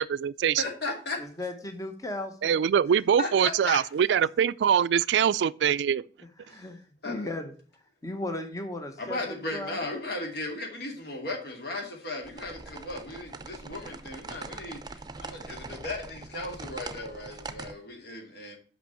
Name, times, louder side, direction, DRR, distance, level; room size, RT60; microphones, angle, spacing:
voice 1, 0.0-0.6 2.4-6.0, right 8 dB, 75° right, 0.3 m, -23 dB
voice 2, 0.6-1.2 3.2-3.3 3.7-3.8 6.5-6.7 7.0-7.3 9.0-18.6, left 2 dB, 65° left, 2.6 m, -36 dB
voice 3, 1.2-2.5 6.4-7.5 8.0-9.8, left 2 dB, 20° left, 1.0 m, -36 dB
sound 1, 12.2-17.7, right 3 dB, 25° right, 0.6 m, -42 dB
6.1 x 5.4 x 6.8 m
head